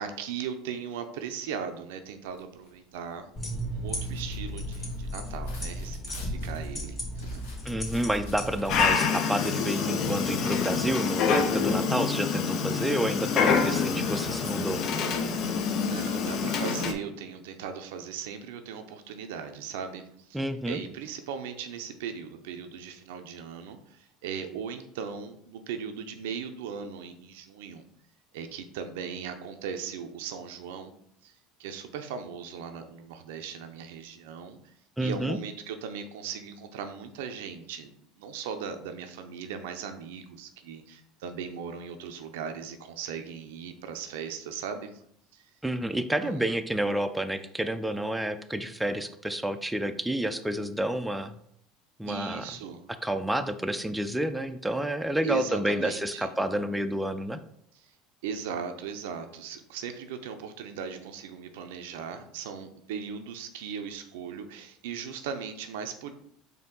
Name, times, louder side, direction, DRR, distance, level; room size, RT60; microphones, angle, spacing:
voice 1, 0.0-7.4 13.6-13.8 15.7-27.8 28.3-30.9 31.2-31.3 31.6-34.6 35.0-37.9 38.2-45.0 45.3-45.4 46.2-46.5 52.1-52.8 55.2-56.3 57.8-57.9 58.2-66.1, right 6 dB, 80° right, 7 dB, 0.5 m, -38 dB
sound 1, 2.0-16.6, equal, 85° left, 1.2 m, -48 dB
sound 2, 3.4-8.9, equal, 30° left, 1.8 m, -35 dB
voice 2, 7.6-14.8 20.3-20.8 35.0-35.4 45.6-51.4 52.0-52.5 53.0-57.4, right 1 dB, 5° right, 8 dB, 0.4 m, -29 dB
Dog, 8.7-16.9, left 5 dB, 55° left, 0.5 m, -26 dB
4.4 x 2.7 x 3.8 m, 0.68 s
hypercardioid pair, 85°, 0 cm